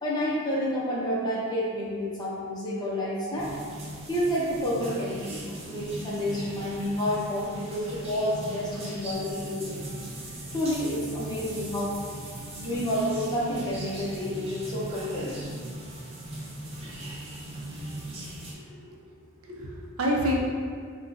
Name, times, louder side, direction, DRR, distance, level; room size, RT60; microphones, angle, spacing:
voice 1, 0.0-3.5 4.1-5.4 5.7-9.9 10.5-12.0 12.5-15.5, equal, 20° left, -7 dB, 0.6 m, -29 dB
sound 1, 3.4-18.5, right 1 dB, 30° right, 0.4 m, -39 dB
voice 2, 18.5-18.9 19.4-20.3, equal, 85° right, -2 dB, 0.6 m, -29 dB
3.6 x 2.2 x 2.5 m, 2.1 s
head